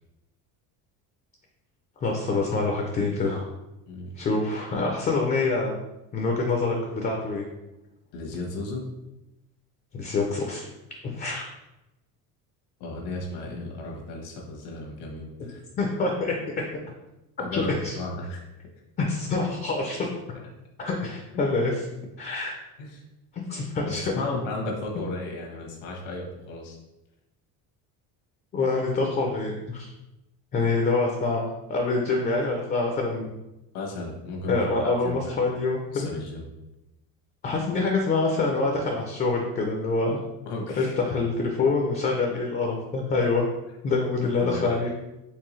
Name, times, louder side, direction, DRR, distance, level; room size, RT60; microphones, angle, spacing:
voice 1, 2.0-3.5 4.2-5.8 6.1-7.5 9.9-10.6 11.0-11.5 15.8-16.6 17.5-18.0 19.0-20.0 20.8-21.9 22.2-22.5 23.3-24.1 25.0-25.1 28.5-29.9 30.5-33.3 34.5-36.1 37.4-40.2 40.8-43.5 43.8-44.9, left 3 dB, 25° left, 1 dB, 0.4 m, -26 dB
voice 2, 8.1-8.8 12.8-15.6 17.4-18.4 21.3-21.5 22.8-23.0 23.8-26.8 33.7-35.6 35.9-36.5 40.5-41.0 44.4-44.8, left 2 dB, 85° left, 0 dB, 1.3 m, -34 dB
4.5 x 3.4 x 3.1 m, 0.95 s
cardioid pair, 155°, 39 cm